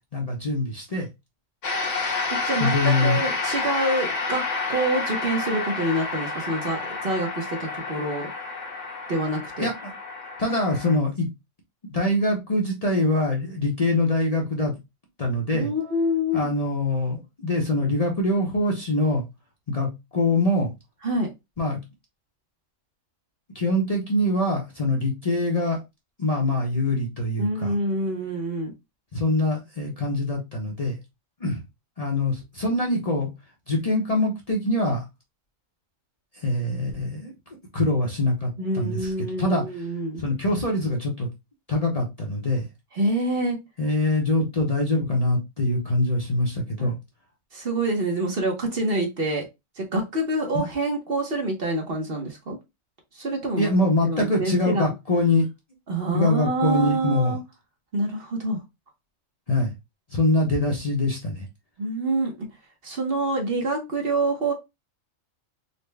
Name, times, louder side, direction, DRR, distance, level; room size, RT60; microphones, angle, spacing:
voice 1, 0.1-1.1 2.6-3.2 9.6-9.9 10.4-11.3 11.9-14.7 15.2-15.7 16.3-19.3 19.7-20.7 21.6-21.8 23.5-25.8 26.2-27.7 29.1-31.0 31.4-31.6 32.0-33.3 33.7-35.0 36.4-37.3 37.7-38.5 38.7-39.1 39.4-39.6 40.2-41.3 41.7-42.7 43.8-46.9 50.5-50.6 53.6-55.4 56.1-57.4 59.5-59.7 60.1-61.4, left 2 dB, 35° left, -1 dB, 0.8 m, -24 dB
sound 1, 1.6-11.0, left 3 dB, 70° left, 1.4 m, -29 dB
voice 2, 2.3-4.4 4.7-8.3 9.1-9.7 15.5-16.5 21.0-21.3 27.4-28.7 38.6-40.2 42.9-43.6 46.8-46.9 47.5-49.4 49.8-52.6 53.1-53.7 54.0-54.9 55.9-57.4 57.9-58.6 61.8-62.5 62.8-64.5, right 1 dB, 50° right, 2 dB, 1.1 m, -26 dB
4.1 x 2.1 x 3.2 m, 0.22 s
omnidirectional pair, 1.4 m